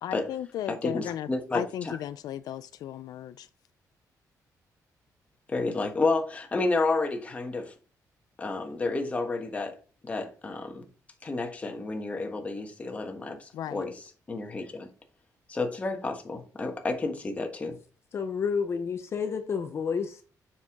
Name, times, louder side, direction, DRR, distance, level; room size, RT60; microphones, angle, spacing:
voice 1, 0.0-3.5 13.5-13.8, left 11 dB, 80° left, 0.4 m, -35 dB
voice 2, 0.7-2.0 5.5-7.7 8.4-9.8 10.0-10.9 11.2-13.9 14.3-14.9 15.5-17.8, left 3 dB, 20° left, 1.3 m, -30 dB
voice 3, 18.1-20.2, left 6 dB, 40° left, 0.7 m, -30 dB
7.3 x 5.7 x 3.6 m
cardioid pair, 160°, 7 cm